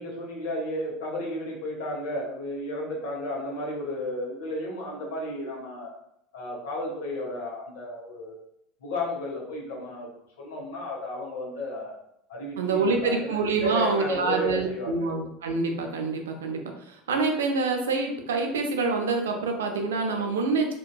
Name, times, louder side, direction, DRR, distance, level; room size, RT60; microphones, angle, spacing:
voice 1, 0.0-5.9 6.3-8.4 8.8-10.1 10.4-12.0 12.3-15.1, left 1 dB, 75° left, -2 dB, 0.8 m, -33 dB
voice 2, 12.6-20.7, right 4 dB, 80° right, 4 dB, 0.4 m, -26 dB
2.6 x 2.2 x 2.2 m, 0.75 s
hypercardioid pair, 75°, 0 cm